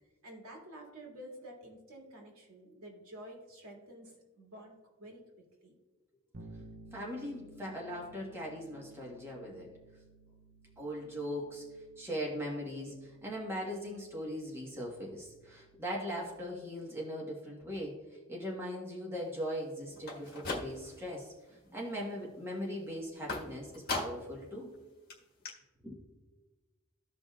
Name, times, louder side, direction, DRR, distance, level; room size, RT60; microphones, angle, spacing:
voice 1, 0.2-5.3 5.6-5.7, right 1 dB, 85° right, -2 dB, 2.3 m, -50 dB
Bass guitar, 6.3-16.2, right 2 dB, 45° right, 0.6 m, -57 dB
voice 2, 6.9-9.7 10.8-11.6 12.0-21.3 21.7-24.7 25.8-26.0, equal, 10° right, -3 dB, 1.3 m, -39 dB
sound 1, 20.0-21.1 21.5-22.0 23.3-24.4 24.7-24.8 25.1-25.2 25.4-25.5, left 2 dB, 45° left, 1.5 m, -39 dB
15.0 x 5.2 x 2.4 m, 1.2 s
head